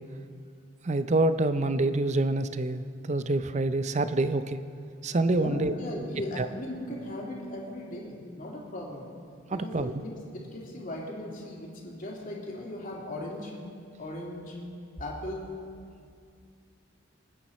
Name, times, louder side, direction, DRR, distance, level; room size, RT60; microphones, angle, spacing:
voice 1, 0.8-4.6 5.0-5.7 6.4-6.5 9.5-9.9, right 2 dB, 35° right, 11 dB, 0.5 m, -26 dB
voice 2, 5.3-9.1 9.5-13.5 14.0-14.6 15.0-15.6, left 1 dB, 45° left, -3 dB, 2.8 m, -38 dB
26.0 x 9.3 x 4.3 m, 2.3 s
head